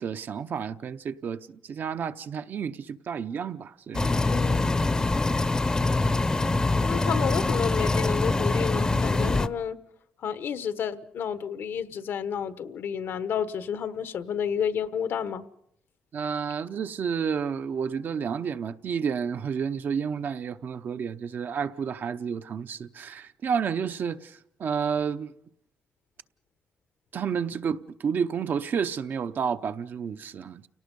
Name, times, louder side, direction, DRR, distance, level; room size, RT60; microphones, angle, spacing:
voice 1, 0.0-4.4 6.0-6.3 16.1-25.3 27.1-30.7, right 6 dB, 55° right, 0.8 m, -31 dB
sound 1, 3.9-9.5, left 2 dB, 20° left, 0.7 m, -24 dB
voice 2, 4.2-4.8 6.8-9.8 10.2-15.4, left 8 dB, 70° left, 1.1 m, -31 dB
30.0 x 18.5 x 5.4 m
cardioid pair, 120°, 4 cm